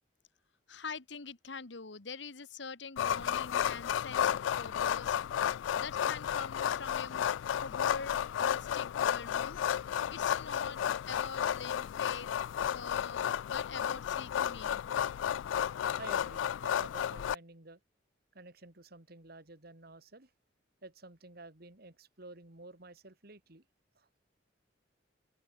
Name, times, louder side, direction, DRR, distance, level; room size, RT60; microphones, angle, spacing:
voice 1, 0.7-9.6 10.1-12.3 12.7-14.9, left 5 dB, 70° left, 1.4 m, -44 dB
sound 1, 3.0-17.3, left 9 dB, 90° left, 0.3 m, -32 dB
voice 2, 16.0-17.8 18.3-20.3 20.8-23.6 24.0-24.1, right 2 dB, 55° right, 2.4 m, -51 dB
open air
head